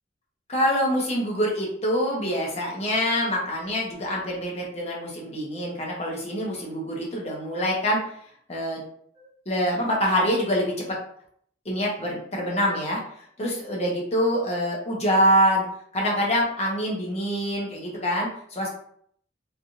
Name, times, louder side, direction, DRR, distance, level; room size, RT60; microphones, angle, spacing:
voice 1, 0.5-8.0 8.5-8.8 9.2-11.0 11.6-13.0 13.4-15.7 15.9-18.7, equal, 35° left, -3 dB, 0.9 m, -25 dB
3.4 x 2.7 x 2.4 m, 0.63 s
head